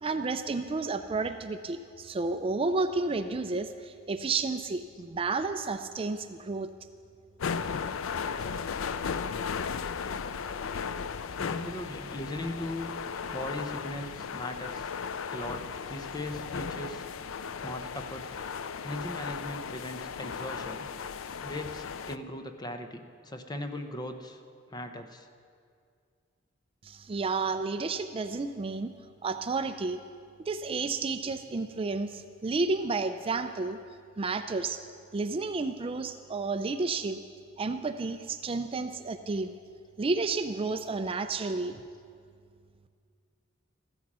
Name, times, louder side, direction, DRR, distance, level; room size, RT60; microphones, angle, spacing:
voice 1, 0.0-6.7 26.8-28.9 29.2-30.0 30.5-33.8 34.2-34.8 35.1-37.2 37.6-39.5 40.0-41.8, right 3 dB, 30° right, 9 dB, 0.4 m, -31 dB
sound 1, 7.4-22.2, left 6 dB, 90° left, 0.5 m, -36 dB
voice 2, 11.4-12.9 13.3-14.9 15.3-17.0 17.6-18.4 18.8-20.9 21.4-24.4 24.7-25.3, left 1 dB, 20° left, 6 dB, 0.8 m, -39 dB
14.5 x 12.5 x 6.1 m, 2.2 s
head